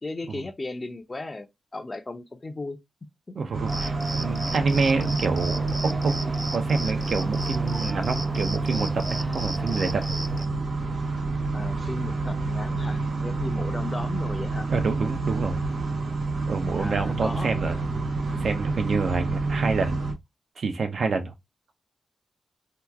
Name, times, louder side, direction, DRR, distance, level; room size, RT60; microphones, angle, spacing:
voice 1, 0.0-1.5 1.7-2.8 11.5-14.7 16.8-17.5 19.5-19.6, left 2 dB, 25° left, 0.7 m, -35 dB
voice 2, 3.3-10.2 14.7-15.6 16.5-17.8 18.4-20.0 20.6-21.3, right 4 dB, 65° right, 0.7 m, -28 dB
sound 1, 3.5-20.1, right 3 dB, 85° right, 1.0 m, -28 dB
Cricket, 3.7-10.5, right 1 dB, 15° right, 0.3 m, -35 dB
2.9 x 2.3 x 3.5 m
wide cardioid pair, 100°, 0 cm